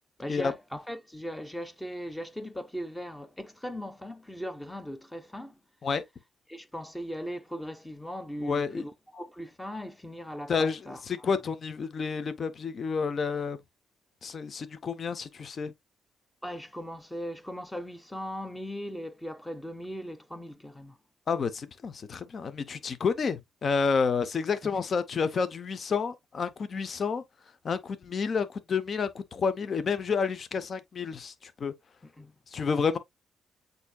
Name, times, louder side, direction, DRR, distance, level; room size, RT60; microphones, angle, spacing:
voice 1, 0.2-5.6 6.5-11.3 16.4-21.0 24.6-24.8 32.0-32.4, equal, 10° left, 0.8 m, -39 dB
voice 2, 8.4-8.8 10.5-13.6 14.2-15.7 21.3-27.2 27.6-31.7 32.5-33.0, left 5 dB, 45° left, 0.6 m, -30 dB
8.1 x 2.7 x 2.2 m
cardioid pair, 90°, 0 cm